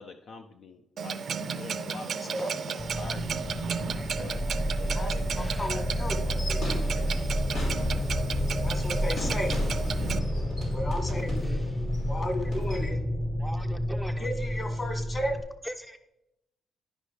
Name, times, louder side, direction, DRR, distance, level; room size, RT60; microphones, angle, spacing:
voice 1, 0.0-2.4 3.0-3.4 4.1-4.4 4.8-6.4 6.8-7.3, left 4 dB, 65° left, 6 dB, 0.4 m, -46 dB
Clock, 1.0-10.2, right 6 dB, 60° right, 0.5 m, -34 dB
voice 2, 1.9-2.9 3.5-3.6 4.9-6.6 8.6-9.7 10.7-11.6 12.1-13.0 13.9-15.3, equal, 40° left, 3 dB, 2.1 m, -34 dB
sound 1, 2.8-15.4, equal, 25° left, 1.1 m, -30 dB
voice 3, 3.9-4.3 4.9-5.0 5.3-6.2 11.4-11.9 13.4-14.3 15.6-16.0, equal, 5° left, 8 dB, 0.5 m, -43 dB
sound 2, 6.2-12.9, left 1 dB, 85° left, 3.3 m, -41 dB
11.5 x 5.0 x 3.3 m, 0.88 s
supercardioid pair, 60°, 0 cm